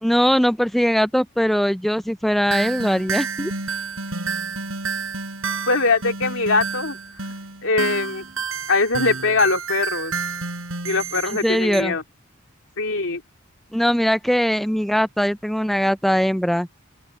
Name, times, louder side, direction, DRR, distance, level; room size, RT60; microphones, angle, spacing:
voice 1, 0.0-3.5 11.4-12.0 13.7-16.7, equal, ahead, 0.3 m, -20 dB
sound 1, 2.5-11.8, right 5 dB, 75° right, 6.6 m, -30 dB
voice 2, 5.7-7.0 7.6-8.2 8.7-10.1 10.8-12.0 12.8-13.2, left 3 dB, 70° left, 3.0 m, -21 dB
open air
head